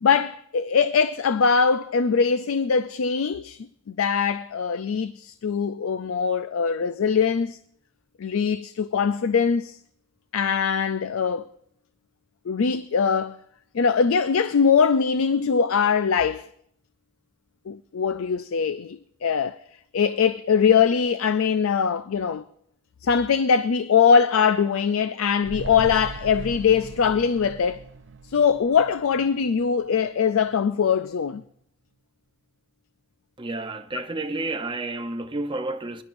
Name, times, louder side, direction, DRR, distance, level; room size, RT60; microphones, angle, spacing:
voice 1, 0.0-7.6 8.2-9.8 10.3-11.5 12.5-13.4 13.7-16.5 17.7-19.6 19.9-22.4 23.0-27.8 28.3-31.4, left 6 dB, 75° left, 0.4 m, -22 dB
sound 1, 25.4-29.9 30.3-30.4, right 3 dB, 60° right, 0.6 m, -39 dB
voice 2, 33.4-36.0, right 2 dB, 25° right, 0.7 m, -30 dB
22.0 x 11.0 x 2.6 m
head